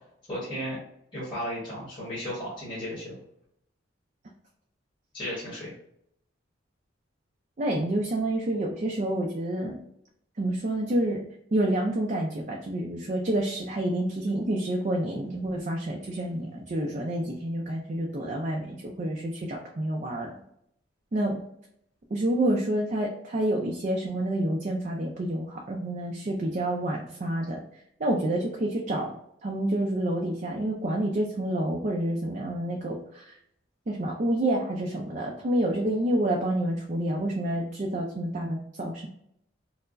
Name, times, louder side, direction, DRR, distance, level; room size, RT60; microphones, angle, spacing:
voice 1, 0.3-0.8 1.1-3.2 5.1-5.7, equal, 25° left, -9 dB, 1.2 m, -34 dB
voice 2, 7.6-9.8 10.4-11.2 11.5-20.4 21.1-21.4 22.1-27.6 28.0-29.1 29.4-33.3 33.9-39.1, right 1 dB, 40° right, 0 dB, 0.4 m, -28 dB
4.4 x 2.0 x 2.5 m, 0.73 s
head